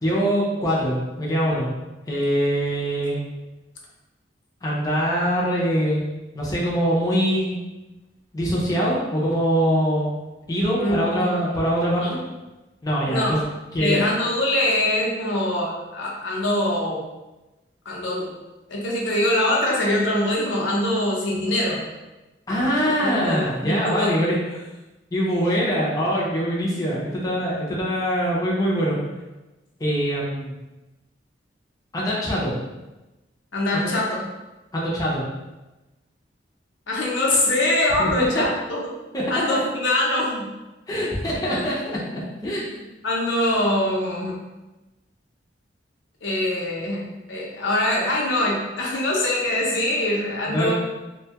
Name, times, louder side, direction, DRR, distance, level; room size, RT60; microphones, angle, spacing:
voice 1, 0.0-1.7 2.1-3.2 4.6-6.0 6.3-7.6 8.3-10.1 10.5-12.2 12.8-13.4 13.7-14.0 22.5-24.6 25.1-29.0 29.8-30.5 31.9-32.5 33.7-33.9 34.7-35.2 38.0-38.4 39.1-39.2 39.5-39.6 40.9-42.7 50.5-50.7, equal, 20° left, -6 dB, 0.5 m, -23 dB
voice 2, 10.8-11.4 12.0-12.2 13.1-13.3 13.8-17.0 17.9-18.3 18.7-21.8 23.0-24.2 33.5-34.2 36.9-38.8 39.3-40.5 41.5-41.7 42.6-44.3 46.2-47.0 47.3-50.7, left 1 dB, 85° left, -3 dB, 0.7 m, -23 dB
2.6 x 2.2 x 2.8 m, 1.1 s
head